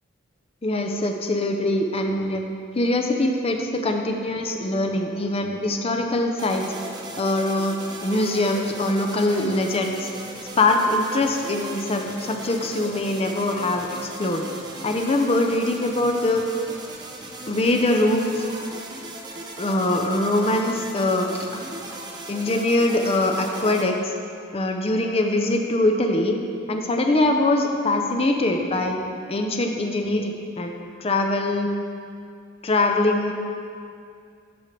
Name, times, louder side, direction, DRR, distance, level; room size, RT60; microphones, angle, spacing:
voice 1, 0.6-2.4 2.8-6.7 7.2-10.1 10.6-14.5 14.8-16.4 17.5-18.4 19.6-21.6 22.3-24.1 24.5-26.4 26.7-29.0 29.3-31.7 32.6-33.3, left 2 dB, 30° left, 3 dB, 0.5 m, -23 dB
sound 1, 6.4-23.8, right 2 dB, 20° right, 0.6 m, -38 dB
10.5 x 5.3 x 3.3 m, 2.4 s
head